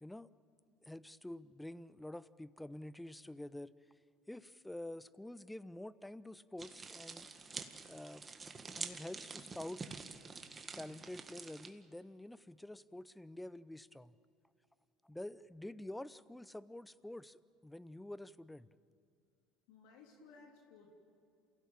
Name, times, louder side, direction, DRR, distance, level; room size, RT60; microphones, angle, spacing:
voice 1, 0.8-3.7 4.3-7.3 7.9-8.2 8.6-9.9 10.8-14.1 15.0-18.7, left 1 dB, 5° left, 18 dB, 0.7 m, -48 dB
sound 1, 6.6-11.7, right 4 dB, 25° right, 1.8 m, -47 dB
voice 2, 19.7-20.9, left 4 dB, 75° left, 0 dB, 3.2 m, -59 dB
28.5 x 16.5 x 8.8 m, 2.5 s
hypercardioid pair, 75°, 0 cm